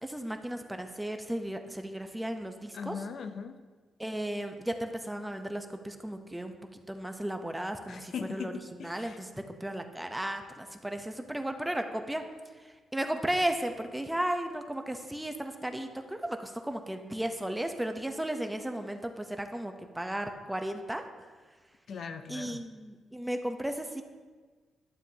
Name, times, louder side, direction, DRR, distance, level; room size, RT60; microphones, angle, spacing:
voice 1, 0.0-3.0 4.0-8.5 8.8-12.2 12.6-21.0 22.3-24.0, right 1 dB, 10° right, 6 dB, 0.7 m, -35 dB
voice 2, 2.7-3.6 7.9-9.2 21.9-22.6, left 6 dB, 65° left, 8 dB, 0.5 m, -40 dB
11.5 x 7.2 x 2.8 m, 1.4 s
cardioid pair, 70°, 0 cm